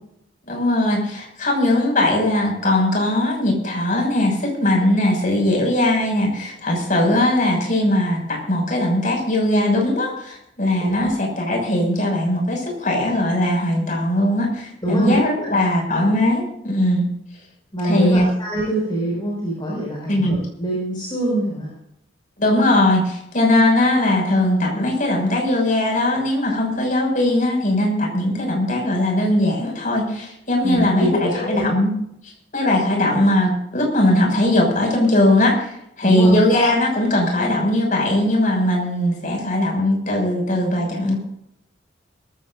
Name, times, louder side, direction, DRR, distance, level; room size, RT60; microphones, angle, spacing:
voice 1, 0.5-17.1 17.8-18.3 20.1-20.4 22.4-31.9 32.5-41.2, left 1 dB, 45° left, 1 dB, 6.6 m, -19 dB
voice 2, 10.8-11.1 14.8-15.5 17.7-21.7 30.6-31.6 36.0-36.3, right 1 dB, 25° left, -5 dB, 6.2 m, -24 dB
22.5 x 15.0 x 2.7 m, 0.75 s
head